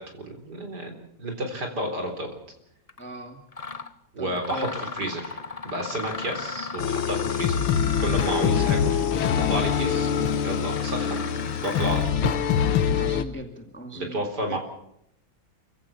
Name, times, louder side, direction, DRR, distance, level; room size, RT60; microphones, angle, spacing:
voice 1, 0.0-2.3 4.1-5.4 5.6-7.6 8.0-11.2 11.6-12.3 13.9-14.6, right 1 dB, 50° right, 4 dB, 4.4 m, -31 dB
Mechanisms, 2.9-3.0 3.5-3.9 4.3-12.2, left 4 dB, 45° left, 0.5 m, -36 dB
voice 2, 3.0-3.4 4.2-4.9 12.9-14.6, equal, 5° left, 4 dB, 2.0 m, -39 dB
sound 1, 6.8-13.2, left 8 dB, 80° left, 2.0 m, -24 dB
28.0 x 16.0 x 7.2 m, 0.78 s
omnidirectional pair, 2.3 m